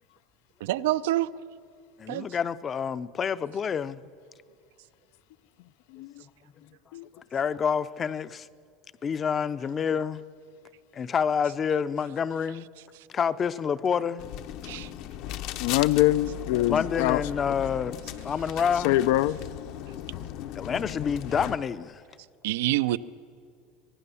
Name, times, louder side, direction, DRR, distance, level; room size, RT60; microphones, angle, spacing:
voice 1, 0.6-1.3 2.1-2.3 14.6-14.9 22.4-23.0, right 16 dB, 85° right, 0.6 m, -26 dB
voice 2, 2.0-4.0 7.1-8.5 9.0-10.2 10.9-12.7 13.1-14.2 16.7-19.0 20.6-22.0, left 7 dB, 25° left, 0.5 m, -28 dB
sound 1, 14.2-21.6, left 12 dB, 55° left, 0.8 m, -37 dB
voice 3, 15.6-17.2 18.8-19.4, left 15 dB, 70° left, 0.4 m, -23 dB
24.5 x 19.0 x 7.0 m
supercardioid pair, 150°, 0 cm